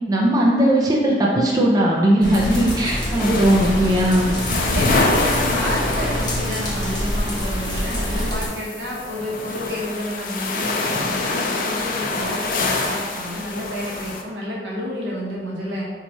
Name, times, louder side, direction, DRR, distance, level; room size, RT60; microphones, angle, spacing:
voice 1, 0.1-4.3, right 1 dB, 20° right, -3 dB, 0.4 m, -18 dB
sound 1, 2.2-8.5, equal, 25° left, 0.8 m, -26 dB
sound 2, 3.2-14.2, left 3 dB, 50° left, 0.4 m, -26 dB
voice 2, 4.7-15.8, equal, 85° right, -4 dB, 0.9 m, -30 dB
3.0 x 2.3 x 4.0 m, 1.5 s
head